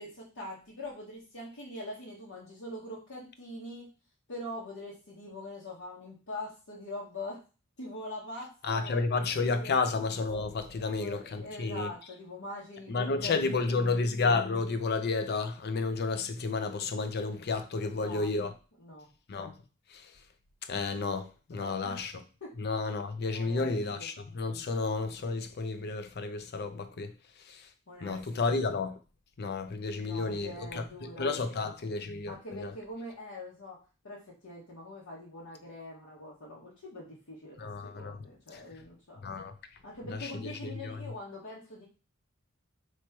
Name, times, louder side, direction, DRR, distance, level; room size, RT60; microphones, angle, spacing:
voice 1, 0.0-3.9 4.3-7.4 7.8-9.0 9.3-9.8 10.8-14.1 17.8-18.5 18.8-19.1 21.5-22.0 22.4-22.5 23.3-24.1 27.9-28.4 30.0-31.3 31.6-31.8 32.3-33.8 34.0-39.2 39.8-41.8, left 1 dB, 90° left, 1.3 m, -43 dB
voice 2, 8.6-11.9 12.9-18.5 19.3-19.5 19.9-20.1 20.7-22.1 22.6-27.1 27.5-27.7 28.0-29.0 29.4-30.8 31.2-32.7 37.6-38.2 39.2-39.5 40.4-41.0, left 3 dB, 50° left, 0.5 m, -31 dB
3.1 x 3.0 x 4.5 m
head